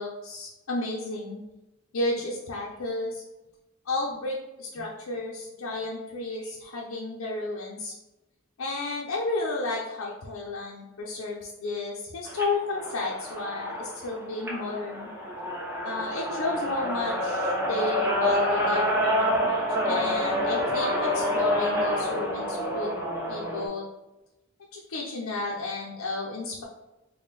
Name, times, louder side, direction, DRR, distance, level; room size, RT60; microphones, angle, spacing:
voice 1, 0.0-1.4 1.9-3.2 3.9-7.9 8.6-15.1 15.8-23.0 23.3-23.8 24.7-26.6, left 2 dB, 80° left, -3 dB, 0.5 m, -32 dB
sound 1, 12.3-23.7, equal, 10° right, 0.9 m, -27 dB
3.6 x 2.2 x 4.0 m, 1.0 s
head